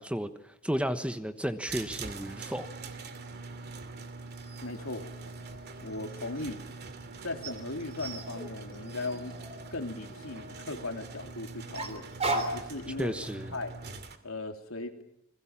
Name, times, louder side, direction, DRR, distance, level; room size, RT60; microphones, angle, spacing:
voice 1, 0.0-2.7 13.0-13.5, equal, 5° right, 9 dB, 1.2 m, -33 dB
sound 1, 1.7-14.2, right 3 dB, 50° right, 2.5 m, -43 dB
sound 2, 4.4-6.5 7.4-10.7 11.7-12.7, right 2 dB, 30° right, 3.7 m, -38 dB
voice 2, 4.6-5.1 5.8-6.6 7.2-9.4 9.7-12.1 12.3-13.2 13.5-13.7 14.2-15.0, left 2 dB, 75° left, 4 dB, 3.3 m, -38 dB
29.5 x 21.5 x 7.4 m, 0.80 s
head